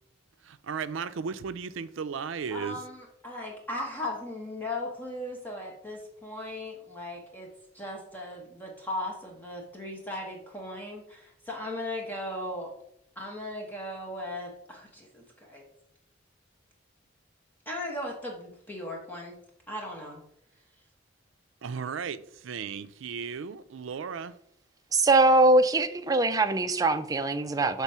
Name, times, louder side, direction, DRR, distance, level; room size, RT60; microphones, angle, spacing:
voice 1, 0.5-2.8 21.6-24.3, right 6 dB, 85° right, 0.4 m, -35 dB
voice 2, 2.5-7.5 7.7-12.7 13.2-15.7 17.7-19.3 19.7-20.2, left 1 dB, 10° left, 1.1 m, -37 dB
voice 3, 24.9-27.8, right 2 dB, 20° right, 0.4 m, -22 dB
6.0 x 3.6 x 5.5 m
head